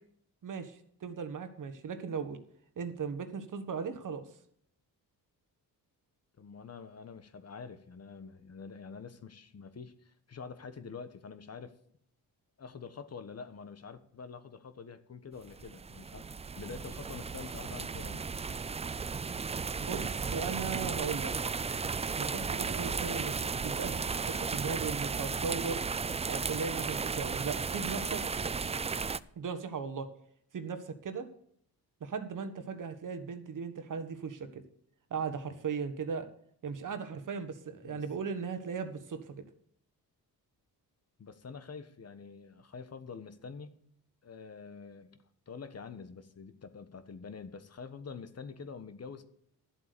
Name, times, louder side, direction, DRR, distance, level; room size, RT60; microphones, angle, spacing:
voice 1, 0.4-2.4 2.8-4.2 19.8-21.3 22.2-23.3 23.6-25.8 26.3-28.2 29.3-30.1 30.5-31.3 32.0-34.6 35.1-36.3 36.6-39.4, right 5 dB, 55° right, 9 dB, 1.5 m, -37 dB
voice 2, 6.4-11.7 12.6-16.2 16.6-18.2 37.8-38.0 41.2-43.7 44.2-45.2 45.5-49.2, left 5 dB, 40° left, 11 dB, 1.3 m, -46 dB
sound 1, 15.5-29.2, right 5 dB, 20° right, 0.4 m, -35 dB
11.5 x 7.9 x 6.7 m, 0.67 s
cardioid pair, 90°, 38 cm